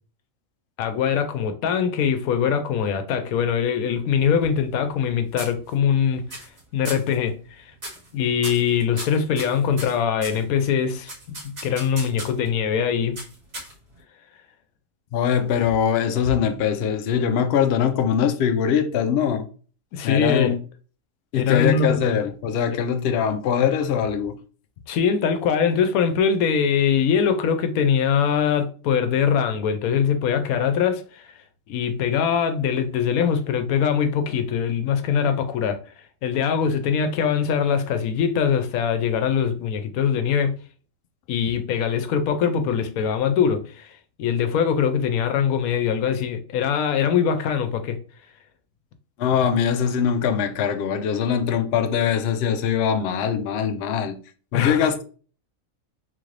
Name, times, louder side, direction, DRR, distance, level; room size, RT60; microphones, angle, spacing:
voice 1, 0.8-6.2 6.7-7.7 8.1-13.2 19.9-20.5 21.3-22.0 24.9-31.2 31.7-35.8 36.2-40.5 41.3-43.9 44.2-48.0 54.5-54.9, left 7 dB, 90° left, 1.1 m, -22 dB
sound 1, 4.2-5.1 5.4-6.0 6.3-6.6 6.8-7.1 7.8-8.1 8.4-10.4 11.1-12.5 13.2-14.0, right 1 dB, 55° right, 2.1 m, -37 dB
voice 2, 15.1-19.5 20.0-20.6 21.3-24.4 49.2-54.2 54.5-55.0, left 8 dB, 65° left, 0.7 m, -22 dB
3.8 x 2.5 x 3.1 m
omnidirectional pair, 1.4 m